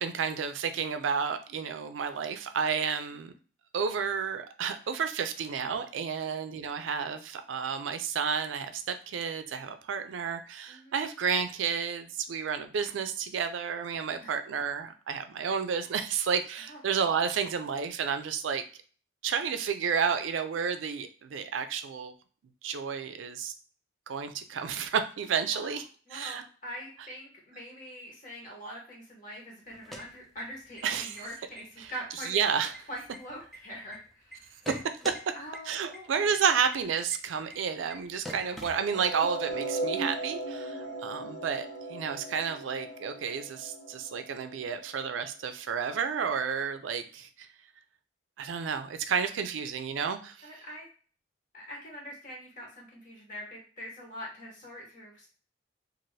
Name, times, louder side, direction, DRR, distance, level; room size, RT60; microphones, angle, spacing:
voice 1, 0.0-3.3 3.7-18.6 19.2-22.1 22.6-23.5 24.1-25.8 26.1-26.4 30.8-31.3 31.8-31.9 32.3-32.7 35.7-47.5 48.4-50.5, right 6 dB, 90° right, 9 dB, 0.4 m, -31 dB
voice 2, 25.5-32.4 32.9-34.7 35.3-36.1 40.6-41.0 48.5-48.7 50.4-50.9 51.5-55.3, equal, 40° left, -2 dB, 1.0 m, -44 dB
sound 1, 29.7-30.8 31.1-31.2 31.6-32.0 32.3-34.0 34.3-35.2 35.5-35.6 35.9-36.0 36.3-36.4 36.7-36.8 37.1-37.2 37.5-37.6 37.9-38.0 38.2-39.3, equal, ahead, 0.4 m, -42 dB
sound 2, 38.9-45.1, right 2 dB, 65° left, 0.7 m, -37 dB
2.6 x 2.5 x 3.1 m, 0.39 s
head